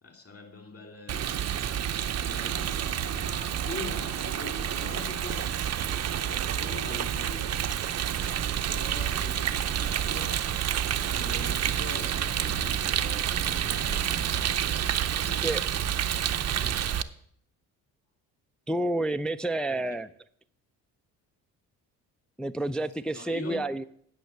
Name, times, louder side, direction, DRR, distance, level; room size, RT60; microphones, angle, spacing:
voice 1, 0.0-1.5 2.2-7.6 8.2-10.4 11.0-14.6 15.2-15.6 19.7-20.0 23.1-23.6, left 3 dB, 35° left, 3.1 m, -43 dB
Rain, 1.1-17.0, right 9 dB, 35° right, 0.6 m, -29 dB
sound 1, 9.1-13.6 14.0-15.0, left 2 dB, 85° left, 1.5 m, -55 dB
voice 2, 18.7-20.1 22.4-23.8, right 1 dB, ahead, 0.3 m, -29 dB
8.9 x 5.8 x 6.7 m
hypercardioid pair, 55°, 43 cm